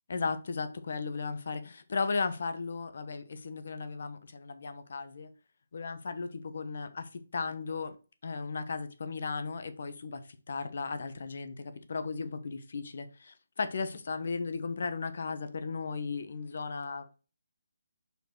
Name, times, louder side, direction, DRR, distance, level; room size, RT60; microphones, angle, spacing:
voice 1, 0.1-5.3 5.7-8.0 8.2-10.2 10.5-17.2, left 4 dB, 60° left, 1.0 m, -36 dB
5.3 x 4.6 x 4.6 m
hypercardioid pair, 160°, 0 cm